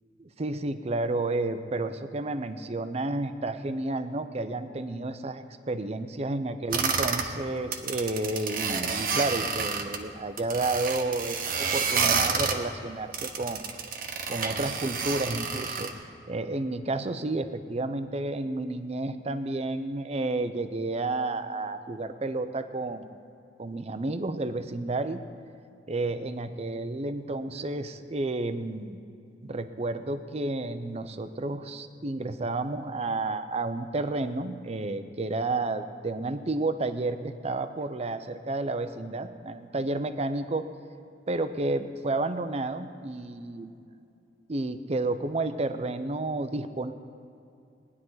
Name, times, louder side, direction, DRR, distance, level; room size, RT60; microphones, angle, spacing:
voice 1, 0.2-13.6 14.3-15.9 16.3-23.1 23.6-25.2 25.9-29.0 29.5-40.7 41.3-43.8 44.5-46.9, right 2 dB, 35° right, 10 dB, 0.6 m, -31 dB
sound 1, 6.7-7.3 7.6-10.0 10.4-12.6 13.1-15.9, right 5 dB, 50° right, 1.0 m, -29 dB
19.0 x 11.0 x 4.0 m, 2.6 s
head